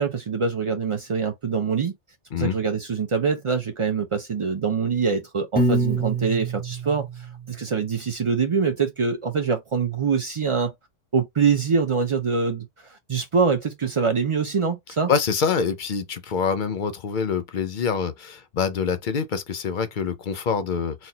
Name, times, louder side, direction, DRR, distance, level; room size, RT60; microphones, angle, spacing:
voice 1, 0.0-1.9 2.4-10.7 11.1-15.1, right 5 dB, 50° right, 0.3 m, -24 dB
Piano, 5.6-7.8, right 2 dB, 10° left, 0.7 m, -25 dB
voice 2, 15.1-21.1, left 6 dB, 50° left, 0.6 m, -25 dB
4.3 x 2.1 x 3.9 m
omnidirectional pair, 1.3 m